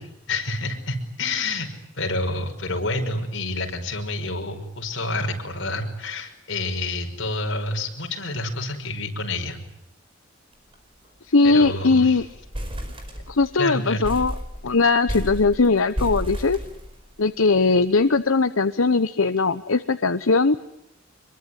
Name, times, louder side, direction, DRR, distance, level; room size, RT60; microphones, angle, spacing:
voice 1, 0.0-1.7 2.0-9.6 11.4-12.2 13.6-14.1, left 2 dB, 65° left, 3 dB, 5.7 m, -28 dB
sound 1, 10.5-10.8 11.0-11.1 11.5-11.8 12.2-13.6 14.0-17.3, equal, 25° right, 5.1 m, -32 dB
voice 2, 11.3-12.3 13.3-14.3 14.6-16.6 17.2-20.6, left 3 dB, 85° left, 10 dB, 1.0 m, -19 dB
25.5 x 23.0 x 9.7 m, 0.79 s
head